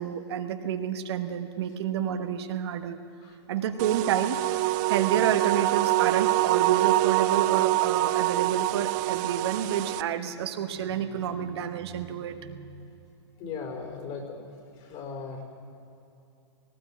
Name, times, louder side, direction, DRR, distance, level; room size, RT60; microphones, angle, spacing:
voice 1, 0.0-3.0 3.5-4.4 4.9-12.9, right 9 dB, 65° right, 6 dB, 1.2 m, -30 dB
sound 1, 3.8-10.0, right 17 dB, 40° right, 0.5 m, -25 dB
voice 2, 13.4-14.5 14.8-15.4, left 5 dB, 40° left, 3 dB, 4.3 m, -37 dB
18.5 x 17.0 x 8.6 m, 2.6 s
hypercardioid pair, 125°, 15 cm